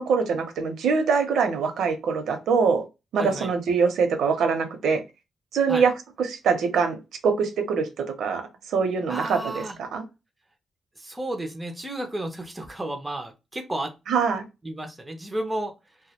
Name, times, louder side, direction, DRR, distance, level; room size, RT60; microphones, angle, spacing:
voice 1, 0.0-2.8 3.1-5.0 5.5-5.9 6.2-7.0 7.2-9.5 9.8-10.0 14.1-14.4, right 5 dB, 80° right, 0.6 m, -23 dB
voice 2, 3.2-3.5 5.7-5.9 9.1-9.8 11.0-13.9 14.6-15.7, right 1 dB, 10° right, 0.4 m, -32 dB
2.2 x 2.0 x 2.8 m
wide cardioid pair, 165°, 0 cm